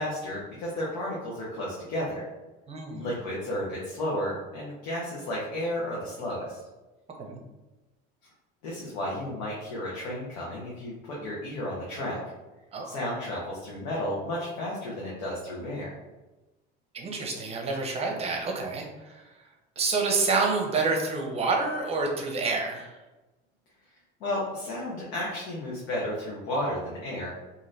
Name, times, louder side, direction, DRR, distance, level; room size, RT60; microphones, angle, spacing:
voice 1, 0.0-2.3 3.0-6.6 8.6-12.2 12.8-15.9 24.2-27.3, left 1 dB, 85° left, -5 dB, 0.8 m, -33 dB
voice 2, 2.7-3.1 7.2-7.4 12.7-12.9 16.9-18.8 19.8-22.9, right 3 dB, 30° right, 1 dB, 0.7 m, -28 dB
3.1 x 2.6 x 2.6 m, 1.1 s
cardioid pair, 120°, 21 cm